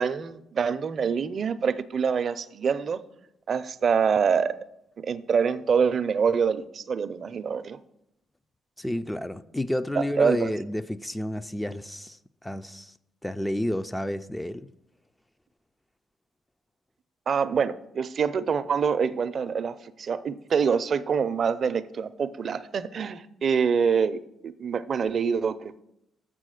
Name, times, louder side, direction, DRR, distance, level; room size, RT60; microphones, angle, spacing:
voice 1, 0.0-3.0 3.5-4.5 5.0-7.8 10.0-10.5 17.3-25.8, right 6 dB, 50° right, 0.5 m, -25 dB
voice 2, 8.8-12.9 13.2-14.7, left 1 dB, 10° left, 0.4 m, -30 dB
7.5 x 5.9 x 6.4 m
cardioid pair, 90°, 0 cm